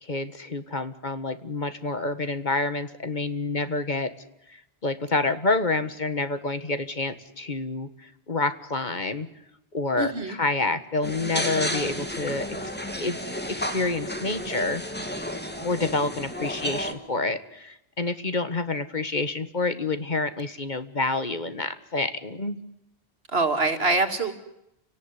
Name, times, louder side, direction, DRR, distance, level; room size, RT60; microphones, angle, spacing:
voice 1, 0.0-4.1 4.5-9.3 9.7-12.7 13.0-13.2 13.5-14.8 15.6-22.6, left 3 dB, 45° left, 11 dB, 1.7 m, -28 dB
voice 2, 10.0-10.4 23.3-24.3, right 3 dB, 75° right, 7 dB, 2.7 m, -24 dB
sound 1, 11.0-16.9, equal, 10° left, 2.6 m, -32 dB
30.0 x 18.0 x 9.9 m, 0.84 s
omnidirectional pair, 1.0 m